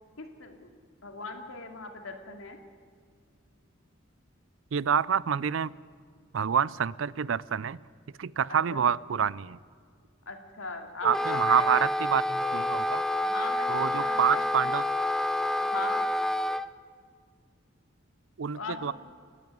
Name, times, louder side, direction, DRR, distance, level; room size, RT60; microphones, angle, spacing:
voice 1, 0.2-0.7 1.0-2.6 8.5-8.8 10.3-11.9 13.2-14.5 15.6-16.0 18.5-18.9, left 4 dB, 90° left, 4 dB, 2.6 m, -39 dB
voice 2, 4.7-5.7 6.3-7.8 8.2-9.6 11.0-13.0 13.7-14.8 18.4-18.9, right 7 dB, 70° right, 21 dB, 0.5 m, -27 dB
Wind instrument woodwind instrument, 11.0-16.7, left 1 dB, ahead, 0.4 m, -28 dB
29.5 x 11.0 x 9.4 m, 2.1 s
head